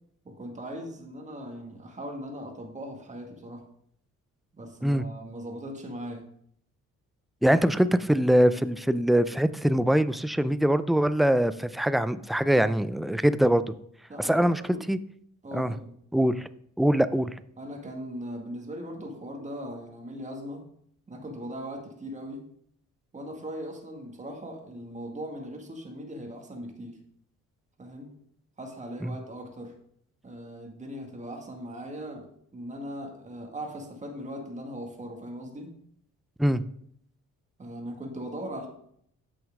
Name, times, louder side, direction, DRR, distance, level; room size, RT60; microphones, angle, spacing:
voice 1, 0.3-3.6 4.5-6.2 14.1-14.8 15.4-15.9 17.6-20.6 21.1-22.4 23.1-27.0 27.8-28.1 28.6-29.7 30.2-32.2 32.5-35.7 37.6-38.7, equal, 25° right, 1 dB, 1.8 m, -39 dB
voice 2, 7.4-13.6 14.2-14.6 14.9-15.0 15.5-15.7 16.1-16.5 16.8-17.3 29.0-29.2 36.4-36.6, equal, ahead, 14 dB, 0.3 m, -23 dB
8.6 x 6.2 x 3.6 m, 0.68 s
cardioid pair, 90°, 30 cm